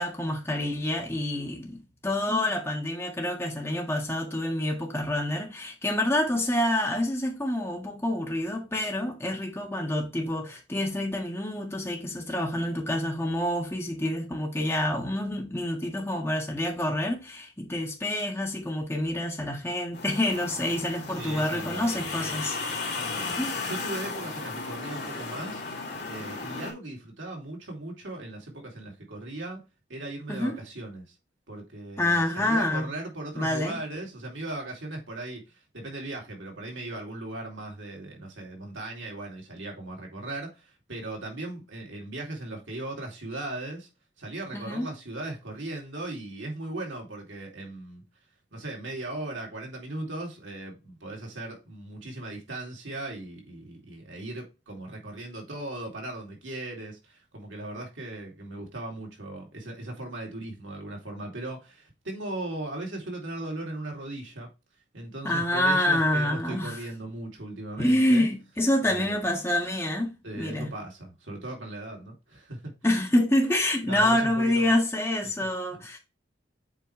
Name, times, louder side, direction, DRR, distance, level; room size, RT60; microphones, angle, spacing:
voice 1, 0.0-22.6 23.3-23.5 30.3-30.6 32.0-32.9 33.4-33.8 44.5-44.9 65.2-66.8 67.8-70.7 72.8-76.0, left 1 dB, 15° left, 1.7 m, -27 dB
sound 1, 19.9-26.7, left 4 dB, 60° left, 2.3 m, -35 dB
voice 2, 21.2-22.1 22.8-23.4 23.6-25.6 26.1-29.6 29.9-31.2 31.5-43.9 44.2-48.0 48.5-64.5 64.9-68.3 68.9-69.2 70.2-72.7 73.9-74.7 75.2-75.5, right 2 dB, 90° right, 2.7 m, -38 dB
7.8 x 4.5 x 3.2 m
head